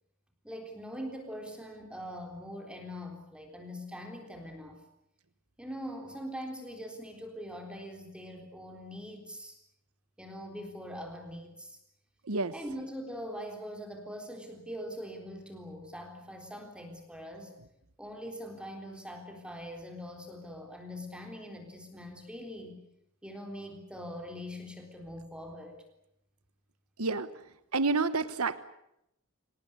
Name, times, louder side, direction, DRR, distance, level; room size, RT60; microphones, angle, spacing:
voice 1, 0.4-4.8 5.6-9.6 10.2-11.8 12.5-17.5 18.0-22.8 23.2-25.8, equal, 5° right, 2 dB, 3.8 m, -42 dB
voice 2, 27.7-28.6, right 3 dB, 85° right, 12 dB, 1.2 m, -28 dB
27.0 x 19.0 x 9.9 m, 0.81 s
head